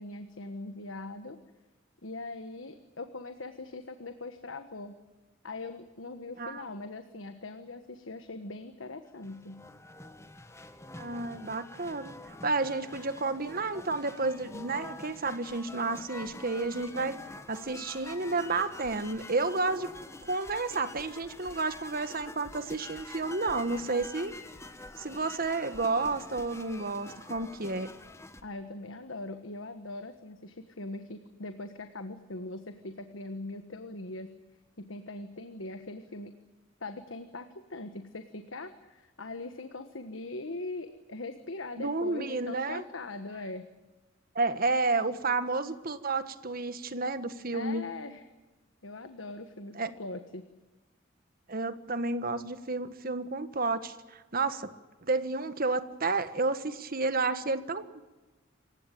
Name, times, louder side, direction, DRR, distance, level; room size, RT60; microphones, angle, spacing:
voice 1, 0.0-1.4 2.0-4.9 5.4-9.6 28.4-34.3 34.8-36.3 36.8-43.7 47.5-48.3 48.8-50.5, left 2 dB, 70° left, 8 dB, 1.4 m, -41 dB
sound 1, 9.1-28.4, left 2 dB, 15° left, 1.4 m, -47 dB
voice 2, 11.0-17.2 17.5-19.9 20.2-24.3 25.0-27.9 41.8-42.8 44.3-47.8 49.7-49.9 51.5-54.7 55.0-58.0, right 3 dB, 45° right, 11 dB, 1.5 m, -31 dB
27.0 x 16.0 x 9.2 m, 1.2 s
head